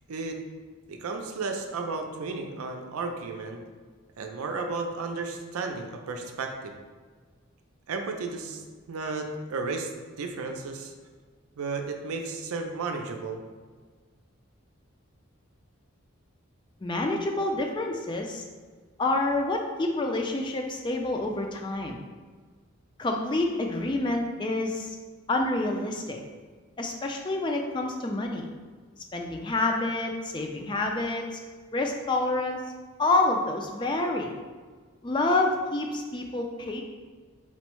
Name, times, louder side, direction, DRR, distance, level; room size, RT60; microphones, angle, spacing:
voice 1, 0.9-3.6 4.2-6.7 7.9-8.6 8.9-9.9 10.2-10.9 11.6-13.4, right 4 dB, 90° right, 4 dB, 0.5 m, -33 dB
voice 2, 16.8-18.4 19.0-22.0 23.0-25.0 25.3-26.2 26.8-28.5 29.1-31.4 31.7-32.6 33.0-34.3 35.0-36.8, left 2 dB, 20° left, 2 dB, 0.3 m, -28 dB
4.2 x 2.1 x 4.4 m, 1.5 s
head